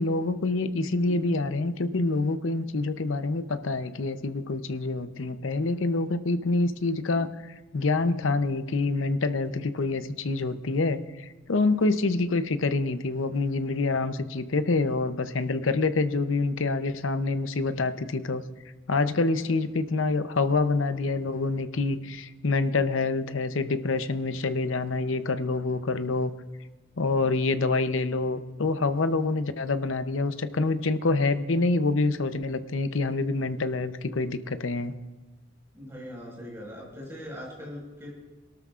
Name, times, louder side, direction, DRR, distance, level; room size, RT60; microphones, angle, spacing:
voice 1, 0.0-18.4 18.9-26.3 27.0-34.9, left 3 dB, 80° left, 11 dB, 0.7 m, -26 dB
voice 2, 35.7-38.1, equal, 15° right, -3 dB, 5.0 m, -40 dB
23.5 x 13.0 x 2.5 m, 1.2 s
head